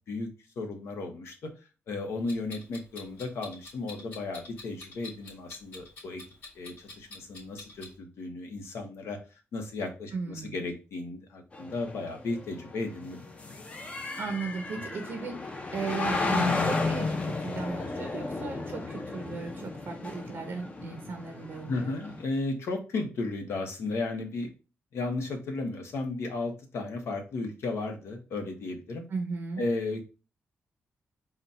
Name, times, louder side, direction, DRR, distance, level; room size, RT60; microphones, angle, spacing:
voice 1, 0.6-1.5 1.9-6.2 6.5-9.2 9.5-13.2 21.7-24.5 24.9-29.0 29.6-30.0, left 3 dB, 80° left, 4 dB, 0.9 m, -34 dB
Clock, 2.3-7.9, left 3 dB, 45° left, 2.1 m, -47 dB
voice 2, 10.1-10.6 14.2-22.2 29.1-29.6, right 5 dB, 55° right, 5 dB, 0.5 m, -37 dB
sound 1, 11.5-22.2, left 3 dB, 25° left, 0.5 m, -33 dB
4.0 x 2.2 x 4.0 m, 0.32 s
wide cardioid pair, 150°, 4 cm